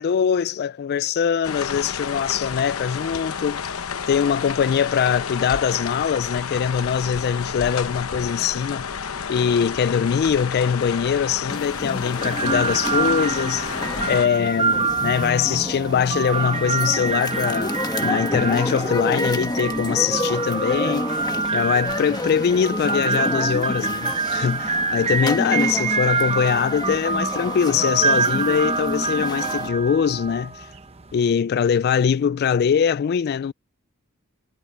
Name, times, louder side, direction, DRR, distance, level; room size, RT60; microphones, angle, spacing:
voice 1, 0.0-3.6 4.1-21.1 21.5-30.7 31.1-33.5, left 7 dB, 50° left, 0.3 m, -22 dB
sound 1, 1.4-14.3, left 6 dB, 90° left, 1.0 m, -30 dB
sound 2, 11.5-29.7, left 1 dB, 20° left, 1.3 m, -29 dB
sound 3, 12.2-31.3, right 4 dB, 30° right, 1.0 m, -26 dB
head